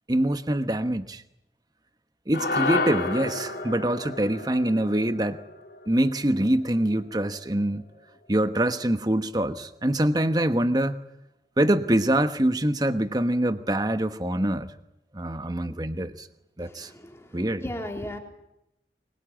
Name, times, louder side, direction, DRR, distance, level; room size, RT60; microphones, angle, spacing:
voice 1, 0.1-1.2 2.3-5.4 5.9-7.8 8.3-11.0 11.6-14.7 15.1-16.3 16.6-16.9 17.3-17.6, right 1 dB, 20° right, 10 dB, 1.1 m, -24 dB
sound 1, 2.3-6.8, left 3 dB, 60° left, 3.8 m, -31 dB
voice 2, 16.6-18.2, left 1 dB, 15° left, 2 dB, 3.3 m, -37 dB
23.5 x 22.5 x 8.9 m, 0.87 s
head